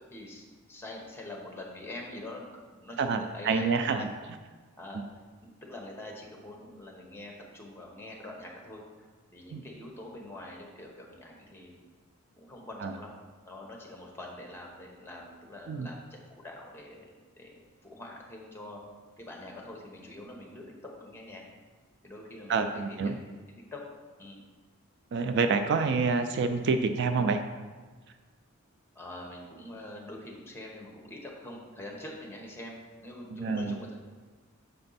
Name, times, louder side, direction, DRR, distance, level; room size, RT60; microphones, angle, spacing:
voice 1, 0.1-2.5 2.7-4.1 4.8-5.0 5.4-9.1 9.3-11.7 12.4-13.2 13.5-18.8 19.2-21.4 22.0-23.8 24.2-24.4 28.9-32.8 33.0-34.0, left 1 dB, 10° left, -1 dB, 1.0 m, -45 dB
voice 2, 3.0-4.1 9.5-9.6 12.8-13.0 15.7-15.9 22.5-23.1 25.1-27.4 33.4-33.7, right 4 dB, 55° right, 8 dB, 0.4 m, -27 dB
6.7 x 4.3 x 4.0 m, 1.4 s
head